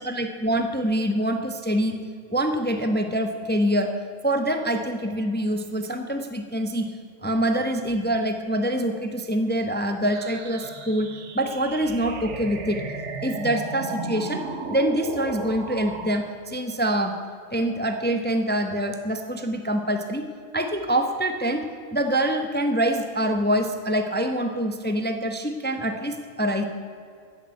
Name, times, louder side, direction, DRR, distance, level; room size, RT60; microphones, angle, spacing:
voice 1, 0.0-2.0 2.3-3.9 4.2-6.9 7.2-11.1 11.3-12.8 13.2-14.4 14.7-17.1 17.5-20.2 20.5-21.6 21.9-26.6, right 1 dB, 10° left, 6 dB, 0.7 m, -25 dB
sound 1, 10.1-16.1, right 4 dB, 90° right, 1.5 m, -35 dB
14.5 x 6.8 x 9.3 m, 2.4 s
omnidirectional pair, 1.2 m